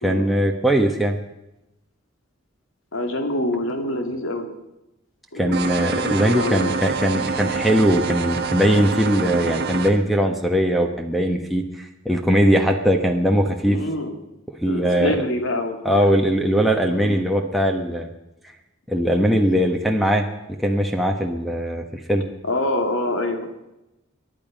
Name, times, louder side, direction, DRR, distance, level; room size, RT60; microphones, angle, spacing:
voice 1, 0.0-1.2 5.3-13.8 14.6-15.1 15.8-18.1 18.9-20.3 20.6-22.3, equal, ahead, 1 dB, 1.3 m, -20 dB
voice 2, 2.9-4.5 5.3-5.6 5.9-6.8 13.7-14.2 14.7-16.1 16.9-17.3 22.4-23.5, left 1 dB, 75° left, 3 dB, 2.8 m, -26 dB
sound 1, 5.5-9.9, right 5 dB, 50° right, 1.4 m, -26 dB
23.5 x 11.0 x 5.3 m, 0.93 s
head